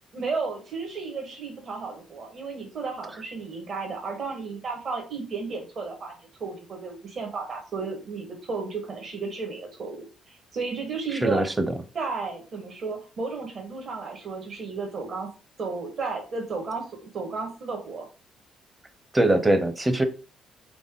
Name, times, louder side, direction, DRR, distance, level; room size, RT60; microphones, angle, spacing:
voice 1, 0.1-6.1 6.4-11.4 11.9-15.3 15.6-18.1, right 4 dB, 55° right, 2 dB, 1.5 m, -33 dB
voice 2, 11.1-11.7 19.1-20.1, right 1 dB, 15° right, 9 dB, 0.8 m, -22 dB
4.1 x 3.3 x 3.7 m, 0.34 s
cardioid pair, 90°, 0 cm